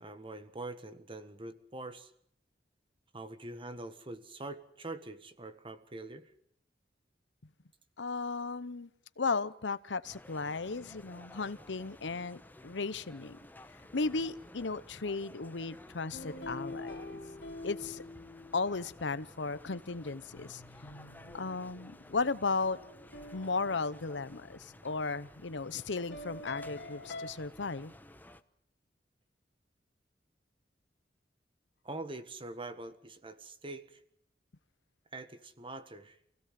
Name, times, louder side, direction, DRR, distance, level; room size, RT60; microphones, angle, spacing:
voice 1, 0.0-2.1 3.1-6.3 31.8-34.0 35.1-36.2, right 2 dB, 30° right, 1.6 m, -44 dB
voice 2, 8.0-8.9 9.2-13.4 13.9-17.2 17.6-18.0 18.5-20.6 21.3-22.8 23.3-27.9, left 4 dB, 90° left, 0.9 m, -35 dB
sound 1, 10.0-28.4, left 1 dB, 10° left, 1.0 m, -54 dB
sound 2, 16.1-19.0 20.3-24.8 26.1-27.3, left 2 dB, 65° left, 3.1 m, -46 dB
27.5 x 16.5 x 7.6 m
head